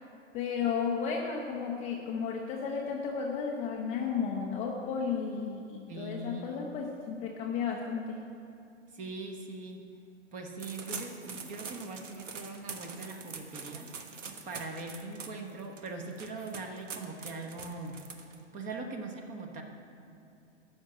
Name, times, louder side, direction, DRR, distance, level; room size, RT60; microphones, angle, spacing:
voice 1, 0.3-8.2, left 6 dB, 20° left, 0 dB, 0.6 m, -33 dB
voice 2, 5.9-6.7 8.9-9.8 10.3-13.9 14.5-18.0 18.5-19.6, right 3 dB, 20° right, 4 dB, 1.1 m, -41 dB
sound 1, 10.6-18.6, right 5 dB, 80° right, 1.3 m, -44 dB
12.5 x 6.0 x 7.7 m, 2.6 s
hypercardioid pair, 135°, 37 cm